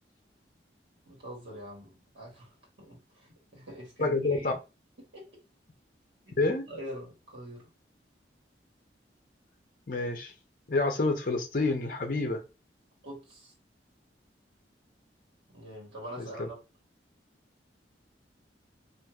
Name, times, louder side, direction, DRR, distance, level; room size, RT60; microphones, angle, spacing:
voice 1, 1.0-4.6 5.0-5.3 6.2-6.4 6.7-7.7 13.0-13.5 15.5-16.6, equal, 80° right, 1.3 m, -44 dB
voice 2, 4.0-4.5 6.4-6.6 9.9-10.3 10.7-12.4 16.2-16.5, left 3 dB, 50° left, 0.6 m, -28 dB
3.0 x 2.5 x 2.3 m
head